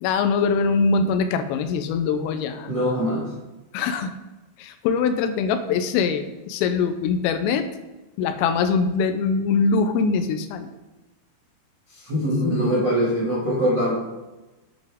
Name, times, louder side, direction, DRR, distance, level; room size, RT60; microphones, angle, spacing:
voice 1, 0.0-2.7 3.7-4.1 4.6-7.7 8.2-10.7, left 5 dB, 85° left, 8 dB, 3.2 m, -23 dB
voice 2, 2.7-3.3 12.0-13.9, equal, 70° right, -7 dB, 1.0 m, -22 dB
9.9 x 8.0 x 3.6 m, 1.1 s
omnidirectional pair, 5.9 m